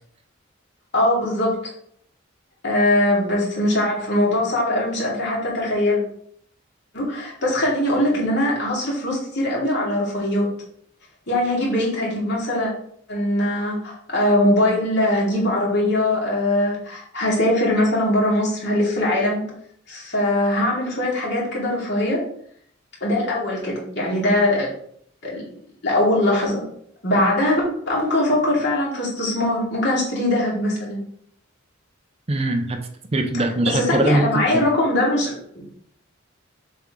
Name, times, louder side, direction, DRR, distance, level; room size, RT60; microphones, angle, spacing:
voice 1, 0.9-1.6 2.6-6.0 6.9-10.5 11.3-12.7 13.1-19.4 19.9-22.2 23.0-24.7 25.2-25.4 25.8-26.6 27.0-31.0 33.7-35.6, left 1 dB, 55° left, 2.6 m, -21 dB
voice 2, 32.3-34.7, right 1 dB, 30° right, 0.6 m, -22 dB
7.2 x 4.4 x 3.7 m
head